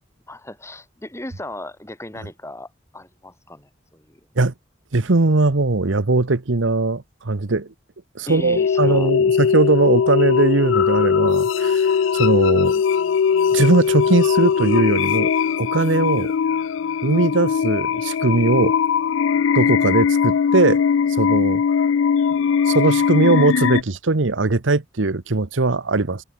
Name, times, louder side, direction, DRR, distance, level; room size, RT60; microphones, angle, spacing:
voice 1, 0.3-4.2 8.3-9.1, left 1 dB, 15° left, 4.4 m, -36 dB
voice 2, 4.9-7.7 8.1-11.8 12.1-12.8 13.5-15.3 15.6-16.3 17.0-18.7 19.5-20.8 21.2-21.6 22.7-26.2, right 3 dB, 90° right, 1.1 m, -19 dB
sound 1, 8.5-23.8, left 7 dB, 85° left, 0.4 m, -20 dB
sound 2, 9.6-18.4 19.2-24.0, right 4 dB, 50° right, 7.4 m, -53 dB
head